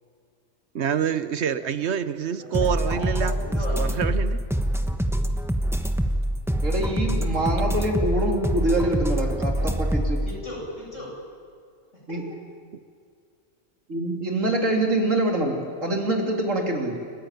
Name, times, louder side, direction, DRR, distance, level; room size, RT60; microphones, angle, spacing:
voice 1, 0.7-3.3 3.7-4.4 12.7-12.8, right 8 dB, 65° right, 12 dB, 1.1 m, -26 dB
voice 2, 2.3-3.9 10.2-11.1 12.1-12.2, left 1 dB, 80° left, -3 dB, 8.4 m, -36 dB
sound 1, 2.5-10.3, right 1 dB, ahead, 1.0 m, -25 dB
voice 3, 6.6-10.2 12.1-12.2 13.9-17.0, right 1 dB, 90° right, 1 dB, 3.6 m, -25 dB
30.0 x 15.0 x 9.2 m, 2.2 s
omnidirectional pair, 1.3 m